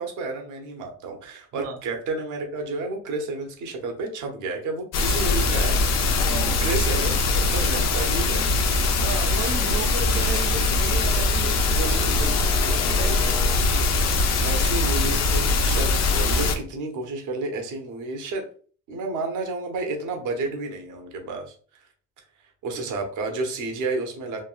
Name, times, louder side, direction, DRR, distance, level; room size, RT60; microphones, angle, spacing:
voice 1, 0.0-6.2 6.6-8.5 14.4-18.5 18.9-21.8 22.6-24.4, right 3 dB, 90° right, 0.8 m, -31 dB
sound 1, 4.9-16.6, left 3 dB, 60° left, 0.6 m, -22 dB
sound 2, 6.0-13.6, left 4 dB, 15° left, 0.4 m, -40 dB
sound 3, 6.3-9.6, left 2 dB, 85° left, 1.0 m, -38 dB
voice 2, 9.0-13.4 22.7-22.9, right 6 dB, 55° right, 0.5 m, -34 dB
3.3 x 2.3 x 2.4 m
cardioid pair, 90°, 30 cm